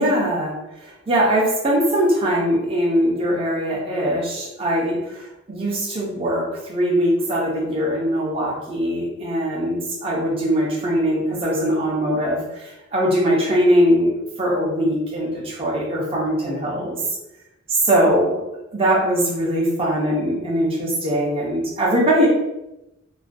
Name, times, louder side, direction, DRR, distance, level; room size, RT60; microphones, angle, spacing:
voice 1, 0.0-14.1 14.4-17.0 17.7-18.4 18.7-22.3, equal, 30° right, -4 dB, 0.5 m, -21 dB
2.3 x 2.1 x 2.5 m, 0.90 s
head